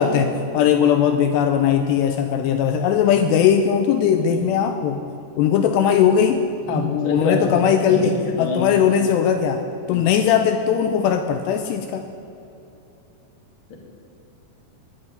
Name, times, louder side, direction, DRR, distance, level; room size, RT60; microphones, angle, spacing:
voice 1, 0.0-5.0 5.4-9.6 9.9-12.0, left 8 dB, 80° left, 7 dB, 2.6 m, -19 dB
voice 2, 6.7-7.5 7.9-8.1 8.4-8.6 9.9-10.1 13.7-13.8, left 3 dB, 40° left, 0 dB, 2.0 m, -26 dB
18.0 x 6.0 x 9.3 m, 2.9 s
omnidirectional pair, 5.2 m